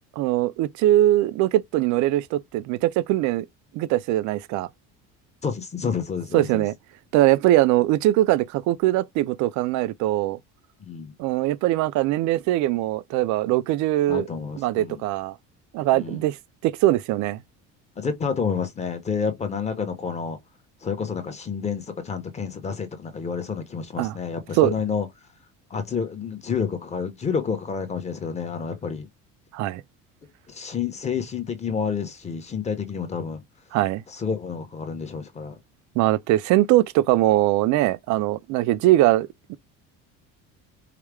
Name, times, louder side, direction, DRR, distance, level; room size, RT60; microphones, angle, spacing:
voice 1, 0.2-3.5 3.7-4.7 6.3-6.7 7.1-10.4 11.2-14.3 14.6-15.4 15.7-16.4 16.6-17.4 24.0-24.1 24.6-24.7 29.5-29.8 33.7-34.0 36.0-39.6, right 15 dB, 65° right, 0.5 m, -21 dB
voice 2, 5.4-6.6 10.8-11.1 14.1-15.0 15.9-16.2 18.0-20.4 20.8-25.1 25.7-29.1 30.5-33.4 34.1-35.6, left 6 dB, 20° left, 0.7 m, -29 dB
4.9 x 2.0 x 3.3 m
cardioid pair, 155°, 31 cm